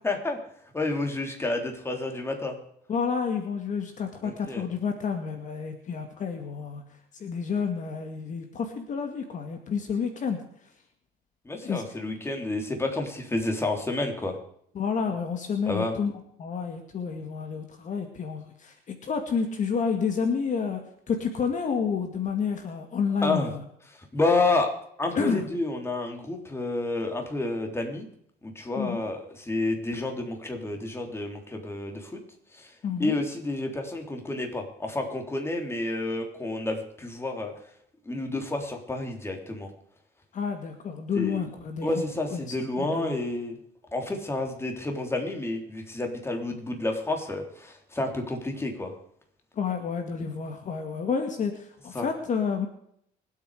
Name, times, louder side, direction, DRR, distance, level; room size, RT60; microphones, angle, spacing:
voice 1, 0.0-0.4 0.7-2.6 4.2-4.6 11.5-14.4 15.7-15.9 23.2-23.5 24.1-24.7 25.0-28.1 28.4-32.2 32.5-32.7 33.0-37.5 38.1-39.7 41.1-41.4 41.8-43.6 43.9-48.9 51.9-52.1, left 2 dB, 15° left, 3 dB, 3.4 m, -30 dB
voice 2, 2.9-6.8 7.1-10.4 11.6-11.8 14.7-16.1 16.4-20.8 21.1-23.6 25.2-25.4 28.8-29.0 32.8-33.1 40.3-42.0 42.3-43.2 49.6-52.7, left 6 dB, 45° left, 5 dB, 2.2 m, -30 dB
25.5 x 8.5 x 5.0 m, 0.69 s
cardioid pair, 110°, 17 cm